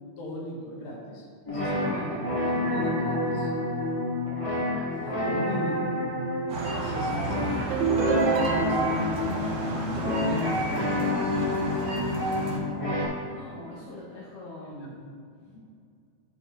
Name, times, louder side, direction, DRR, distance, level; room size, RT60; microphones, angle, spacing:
voice 1, 0.2-3.5 4.9-5.8 6.8-7.7 8.4-9.2 9.6-11.5 14.6-15.0 15.4-15.6, equal, 85° left, -2 dB, 2.7 m, -38 dB
sound 1, 1.4-13.1, left 1 dB, 45° left, 0.4 m, -29 dB
sound 2, 6.5-12.6, right 2 dB, 60° right, 0.9 m, -32 dB
sound 3, 7.7-9.2, right 5 dB, 85° right, 2.1 m, -26 dB
voice 2, 13.2-14.8, left 2 dB, 65° left, -5 dB, 1.5 m, -43 dB
11.5 x 4.4 x 3.0 m, 2.4 s
omnidirectional pair, 3.4 m